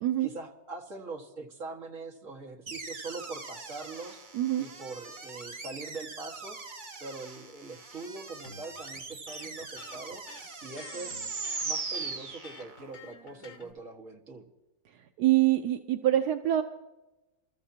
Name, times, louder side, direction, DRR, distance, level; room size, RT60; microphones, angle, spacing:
voice 1, 0.2-4.3 4.6-6.6 7.0-10.2 10.6-11.2 11.6-14.5, right 3 dB, 50° right, 1 dB, 2.1 m, -42 dB
sound 1, 2.7-12.9, right 4 dB, 35° right, 1.1 m, -40 dB
voice 2, 4.3-4.7 15.2-16.6, right 13 dB, 80° right, 6 dB, 1.2 m, -25 dB
Electric guitar, 8.4-13.7, left 3 dB, 85° left, 2.6 m, -50 dB
28.0 x 13.5 x 2.8 m, 1.0 s
omnidirectional pair, 1.7 m